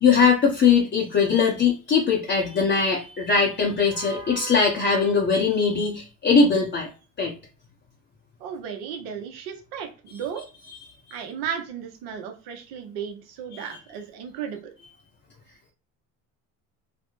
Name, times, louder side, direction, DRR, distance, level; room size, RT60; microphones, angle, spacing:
voice 1, 0.0-6.9 7.2-7.3 10.1-10.2 13.5-13.7, left 5 dB, 25° left, -2 dB, 0.7 m, -21 dB
voice 2, 8.4-10.5 11.1-14.6, right 8 dB, 65° right, 6 dB, 0.8 m, -34 dB
2.4 x 2.0 x 3.0 m, 0.34 s
hypercardioid pair, 70°, 41 cm